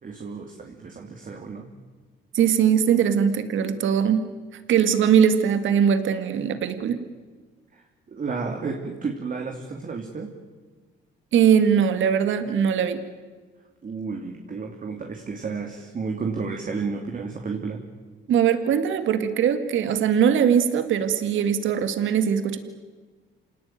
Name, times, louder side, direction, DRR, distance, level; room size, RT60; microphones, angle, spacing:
voice 1, 0.0-1.7 7.7-7.8 8.1-10.3 13.8-17.8, right 4 dB, 40° right, 3 dB, 2.9 m, -32 dB
voice 2, 2.3-4.2 4.7-7.0 11.3-13.0 18.3-22.6, right 8 dB, 75° right, 10 dB, 2.1 m, -21 dB
28.0 x 18.5 x 9.4 m, 1.4 s
cardioid pair, 90°, 20 cm